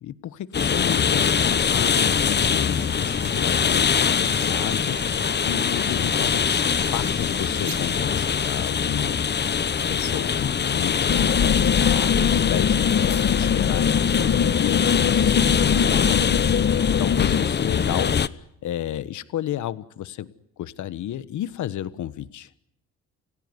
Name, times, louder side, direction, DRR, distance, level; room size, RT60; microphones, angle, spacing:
voice 1, 0.0-6.7 6.9-9.6 9.9-18.2 18.6-22.5, left 12 dB, 75° left, 15 dB, 1.4 m, -32 dB
sound 1, 0.5-18.3, left 7 dB, 35° left, 1.0 m, -23 dB
sound 2, 2.1-8.7, right 9 dB, 70° right, 1.8 m, -42 dB
sound 3, 11.1-17.4, left 7 dB, 50° left, 1.7 m, -22 dB
29.0 x 16.5 x 9.7 m, 0.77 s
cardioid pair, 90°, 30 cm